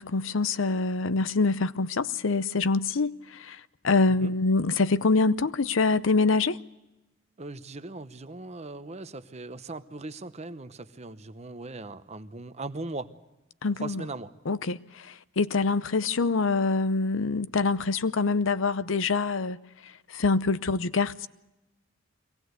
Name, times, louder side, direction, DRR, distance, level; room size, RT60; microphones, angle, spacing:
voice 1, 0.0-6.6 13.6-14.0 14.5-19.6 19.8-21.3, left 3 dB, 70° left, 0.7 m, -25 dB
voice 2, 7.4-13.1 13.7-14.3, right 2 dB, 30° right, 0.9 m, -39 dB
23.0 x 18.0 x 8.0 m
head